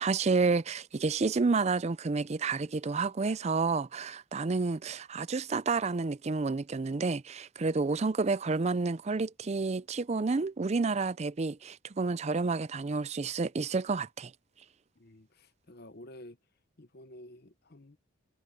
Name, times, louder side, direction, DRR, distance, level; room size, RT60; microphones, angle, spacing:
voice 1, 0.0-14.3, right 4 dB, 30° right, 0.4 m, -30 dB
voice 2, 15.0-16.4 16.8-18.0, left 1 dB, 50° left, 1.1 m, -51 dB
head